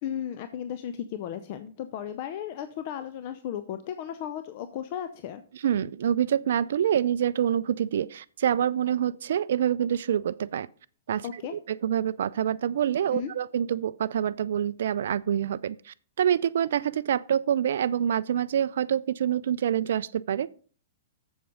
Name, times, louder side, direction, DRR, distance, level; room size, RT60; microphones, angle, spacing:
voice 1, 0.0-5.4 11.2-11.5 13.1-13.3, left 9 dB, 45° left, 0.6 m, -35 dB
voice 2, 5.5-10.7 11.1-20.5, right 9 dB, 60° right, 0.3 m, -26 dB
7.5 x 7.1 x 5.3 m
figure-of-eight pair, 105°, 0 cm